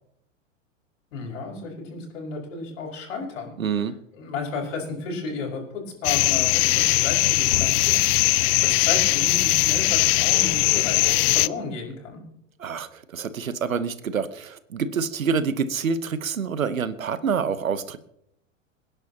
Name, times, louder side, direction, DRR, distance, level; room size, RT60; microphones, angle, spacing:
voice 1, 1.1-3.5 4.2-7.9 8.6-12.2, left 4 dB, 70° left, 0 dB, 5.7 m, -33 dB
voice 2, 3.6-3.9 12.6-18.0, right 6 dB, 85° right, 14 dB, 1.1 m, -27 dB
sound 1, 6.0-11.5, left 21 dB, 50° left, 0.5 m, -20 dB
27.0 x 10.5 x 2.9 m, 0.74 s
hypercardioid pair, 95°, 39 cm